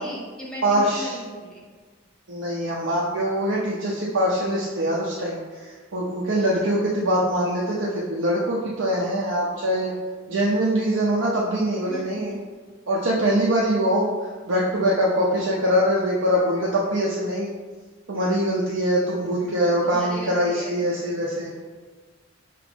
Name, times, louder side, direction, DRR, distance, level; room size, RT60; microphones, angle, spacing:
voice 1, 0.0-1.7 6.4-6.8 11.9-12.2 19.8-20.8, equal, 5° left, -6 dB, 0.9 m, -37 dB
voice 2, 0.6-1.2 2.3-9.9 10.3-12.4 12.9-17.5 18.1-21.5, equal, 75° right, -5 dB, 0.6 m, -23 dB
5.9 x 2.5 x 3.4 m, 1.5 s
head